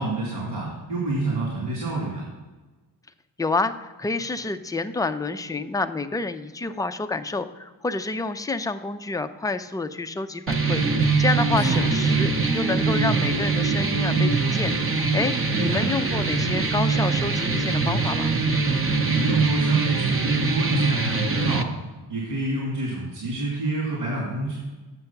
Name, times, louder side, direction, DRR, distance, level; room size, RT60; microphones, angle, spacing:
voice 1, 0.0-2.3 11.5-11.8 15.5-15.8 19.1-21.7 22.1-24.6, right 2 dB, 85° right, -4 dB, 2.8 m, -27 dB
voice 2, 3.4-18.3, left 3 dB, 10° left, 9 dB, 0.4 m, -28 dB
sound 1, 10.5-21.6, right 4 dB, 35° right, 0.7 m, -23 dB
8.2 x 6.5 x 5.8 m, 1.2 s
cardioid pair, 110°, 40 cm